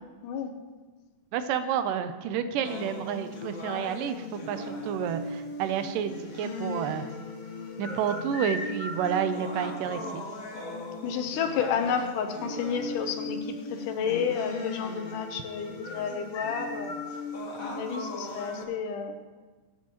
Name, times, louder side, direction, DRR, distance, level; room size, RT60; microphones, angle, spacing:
voice 1, 1.3-7.1 7.8-10.2, right 8 dB, 85° right, 10 dB, 2.3 m, -30 dB
sound 1, 2.6-18.6, left 2 dB, 50° left, 1.0 m, -37 dB
voice 2, 11.0-17.0 17.6-19.1, left 7 dB, 75° left, 6 dB, 2.3 m, -31 dB
20.0 x 9.2 x 3.0 m, 1.3 s
omnidirectional pair, 3.9 m